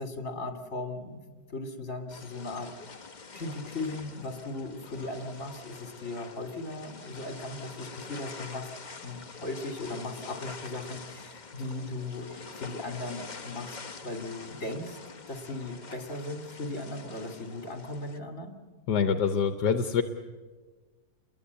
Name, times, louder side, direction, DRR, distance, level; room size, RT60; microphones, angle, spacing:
voice 1, 0.0-2.7 3.3-8.7 9.0-13.8 14.0-15.0 15.3-18.5, left 2 dB, 50° left, 5 dB, 3.1 m, -37 dB
sound 1, 2.1-18.2, left 4 dB, 30° left, 1.1 m, -45 dB
voice 2, 18.9-20.0, left 6 dB, 75° left, 9 dB, 1.5 m, -25 dB
29.5 x 22.0 x 8.2 m, 1.4 s
omnidirectional pair, 1.8 m